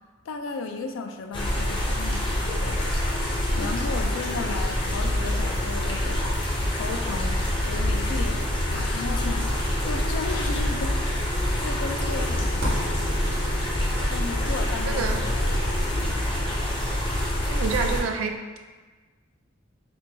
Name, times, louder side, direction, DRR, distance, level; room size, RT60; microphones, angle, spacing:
voice 1, 0.3-2.9 3.6-6.3 6.8-8.5 8.7-13.1 14.1-15.1 16.0-16.2, left 4 dB, 80° left, 5 dB, 0.3 m, -35 dB
sound 1, 1.3-18.0, left 1 dB, 25° left, 0.5 m, -26 dB
sound 2, 8.3-16.2, equal, 60° right, 0.9 m, -41 dB
voice 2, 14.9-15.2 17.5-18.6, right 5 dB, 90° right, 4 dB, 0.4 m, -28 dB
4.3 x 2.2 x 2.7 m, 1.3 s
head